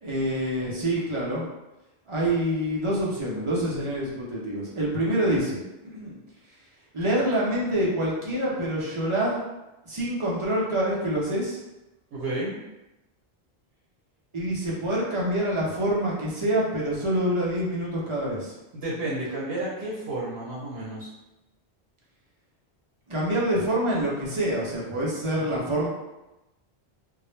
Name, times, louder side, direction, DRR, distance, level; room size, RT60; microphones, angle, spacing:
voice 1, 0.0-1.5 2.1-6.2 6.9-9.4 9.9-11.6 14.3-18.6 23.1-25.9, right 1 dB, 40° right, -5 dB, 0.5 m, -26 dB
voice 2, 12.1-12.6 18.7-21.1, right 2 dB, 80° right, -6 dB, 1.0 m, -31 dB
2.2 x 2.0 x 3.0 m, 0.99 s
omnidirectional pair, 1.1 m